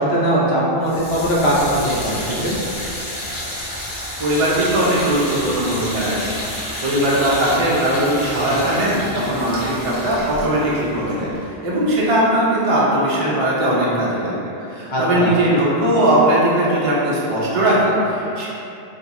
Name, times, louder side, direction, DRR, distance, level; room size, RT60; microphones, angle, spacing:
voice 1, 0.0-2.5 14.9-15.3, equal, 80° left, -6 dB, 1.0 m, -20 dB
sound 1, 0.8-11.9, left 1 dB, 55° left, 0.9 m, -30 dB
voice 2, 4.2-6.3 6.8-18.5, right 1 dB, 40° right, -7 dB, 0.6 m, -19 dB
2.7 x 2.3 x 4.0 m, 2.7 s
omnidirectional pair, 1.0 m